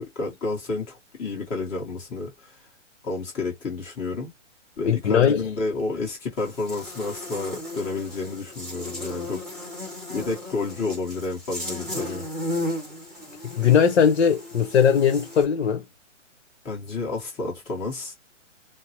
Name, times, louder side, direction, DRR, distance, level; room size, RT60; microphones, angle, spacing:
voice 1, 0.0-2.5 3.0-4.3 4.8-9.4 10.1-12.2 16.6-18.1, left 3 dB, 20° left, 1.3 m, -30 dB
voice 2, 4.9-5.5 13.4-15.8, left 7 dB, 60° left, 1.0 m, -19 dB
Buzz, 6.4-15.4, left 1 dB, ahead, 1.1 m, -35 dB
4.4 x 2.1 x 3.0 m
hypercardioid pair, 145°, 37 cm